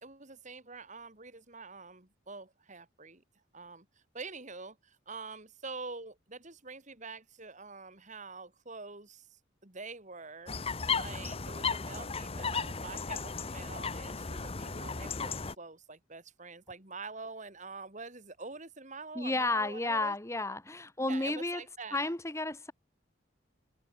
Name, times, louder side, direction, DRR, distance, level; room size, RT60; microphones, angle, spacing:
voice 1, 0.0-3.2 3.5-3.9 4.1-10.5 10.9-20.1 21.0-22.1, right 4 dB, 40° right, 3.0 m, -46 dB
sound 1, 10.5-15.6, left 5 dB, 30° left, 1.0 m, -35 dB
voice 2, 19.1-21.6 21.9-22.7, left 2 dB, 15° left, 1.6 m, -32 dB
head